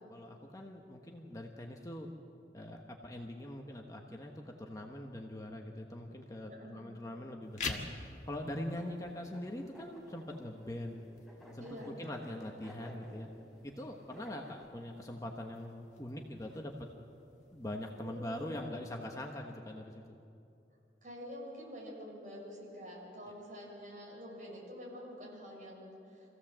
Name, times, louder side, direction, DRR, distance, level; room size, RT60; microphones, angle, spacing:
voice 1, 0.1-2.1 2.5-11.0 11.5-13.3 13.6-16.9 17.5-20.0, left 1 dB, 20° left, 1 dB, 1.2 m, -43 dB
voice 2, 6.5-6.8 11.6-12.0 17.9-18.8 21.0-26.3, equal, 45° right, -3 dB, 6.3 m, -47 dB
sound 1, 7.4-18.4, left 4 dB, 40° left, 1.7 m, -49 dB
sound 2, 7.9-14.7, equal, ahead, 3.3 m, -56 dB
25.0 x 16.0 x 7.5 m, 2.7 s
head